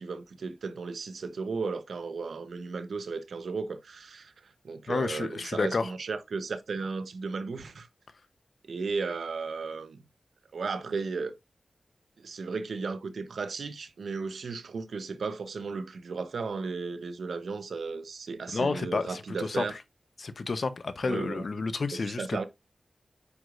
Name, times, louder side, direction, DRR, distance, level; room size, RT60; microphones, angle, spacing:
voice 1, 0.0-7.9 8.6-10.0 10.5-11.3 12.2-19.7 21.0-21.4 22.2-22.5, right 4 dB, 85° right, 0.9 m, -35 dB
voice 2, 4.9-5.9 18.5-19.8 20.2-22.4, left 4 dB, 65° left, 0.8 m, -30 dB
8.4 x 4.8 x 2.5 m
cardioid pair, 55°, 0 cm